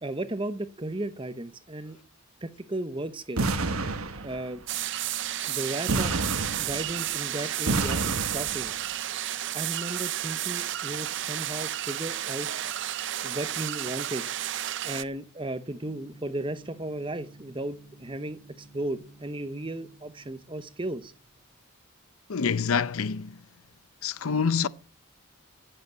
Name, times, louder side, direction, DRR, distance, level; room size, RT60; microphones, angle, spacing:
voice 1, 0.0-2.0 2.4-3.5 4.1-4.6 5.4-6.2 6.6-8.7 9.5-12.5 13.2-14.3 14.8-21.1, right 1 dB, 25° right, 0.9 m, -35 dB
sound 1, 3.4-4.6 5.9-7.1 7.7-8.8, right 3 dB, 90° right, 1.3 m, -29 dB
sound 2, 4.7-15.0, right 12 dB, 55° right, 0.6 m, -32 dB
Gong, 15.8-21.7, right 1 dB, 5° left, 3.0 m, -53 dB
voice 2, 22.3-23.4 24.0-24.7, left 6 dB, 85° left, 0.7 m, -26 dB
16.0 x 7.9 x 8.2 m
head